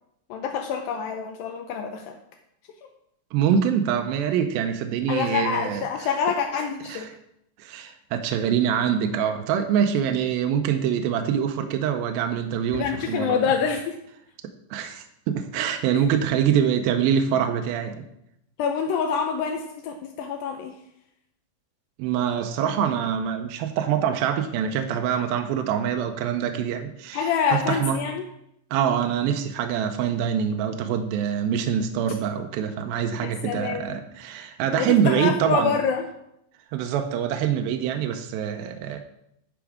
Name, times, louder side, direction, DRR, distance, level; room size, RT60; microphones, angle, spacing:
voice 1, 0.3-2.2 5.1-7.1 12.7-14.0 18.6-20.7 27.1-28.2 33.2-34.0 34.7-36.0, left 6 dB, 85° left, 3 dB, 2.1 m, -26 dB
voice 2, 3.3-5.9 6.9-7.1 7.6-13.4 14.7-18.0 22.0-28.0 28.7-35.7 36.7-39.0, right 8 dB, 85° right, 5 dB, 2.2 m, -25 dB
10.5 x 5.0 x 4.9 m, 0.78 s
omnidirectional pair, 4.8 m